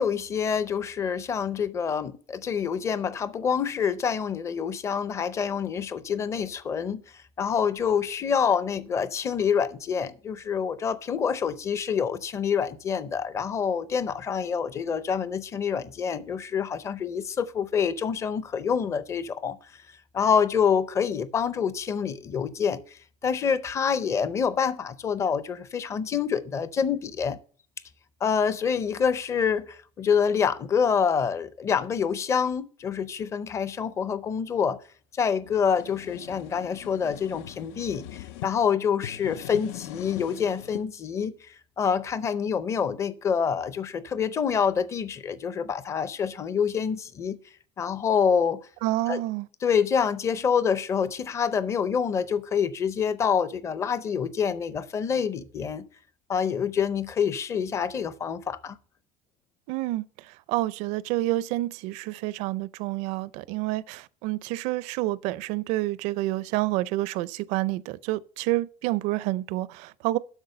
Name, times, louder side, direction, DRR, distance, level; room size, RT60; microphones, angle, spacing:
voice 1, 0.0-7.0 7.4-19.6 20.1-27.4 28.2-34.8 35.1-47.4 47.8-48.6 49.1-49.2 49.6-55.9 56.3-58.8, left 7 dB, 20° left, 0.5 m, -26 dB
sound 1, 35.4-38.5 38.9-40.9, left 14 dB, 85° left, 0.5 m, -41 dB
voice 2, 48.8-49.5 59.7-70.2, right 17 dB, 55° right, 0.4 m, -28 dB
8.1 x 6.1 x 6.4 m
cardioid pair, 170°, 14 cm